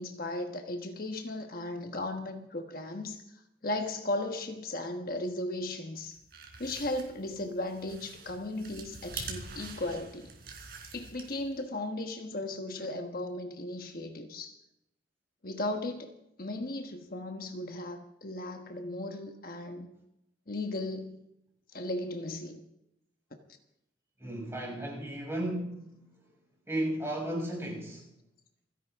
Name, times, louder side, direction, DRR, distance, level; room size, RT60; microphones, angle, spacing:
voice 1, 0.0-3.2 3.6-6.2 6.6-10.3 10.9-14.6 15.4-19.9 20.5-21.2 21.7-22.6, left 2 dB, 55° left, 5 dB, 1.2 m, -36 dB
sound 1, 6.0-11.6, right 5 dB, 60° right, 3.8 m, -45 dB
voice 2, 24.2-25.9 26.7-28.1, right 1 dB, 15° right, -2 dB, 6.5 m, -34 dB
28.5 x 11.0 x 3.6 m, 0.82 s
head